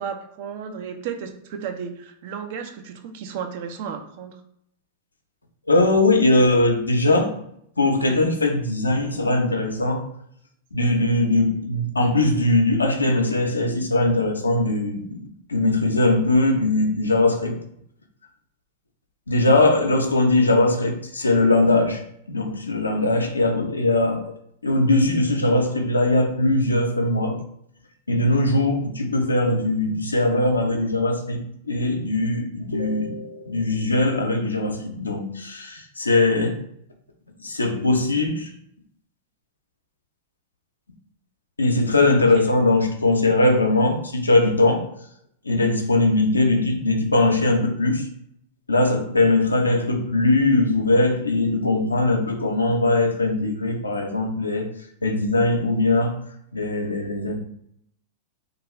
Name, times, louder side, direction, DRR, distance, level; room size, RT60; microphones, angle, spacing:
voice 1, 0.0-4.4 42.3-42.5, right 7 dB, 55° right, 6 dB, 0.4 m, -33 dB
voice 2, 5.7-7.3 7.8-10.0 10.7-15.2 15.5-17.6 19.3-22.0 22.3-24.2 24.6-27.4 28.1-36.6 37.4-38.5 41.6-44.8 45.4-48.1 48.7-54.7 55.0-56.1 56.5-57.4, left 2 dB, 90° left, 3 dB, 0.4 m, -20 dB
2.3 x 2.3 x 3.0 m, 0.71 s
figure-of-eight pair, 100°, 0 cm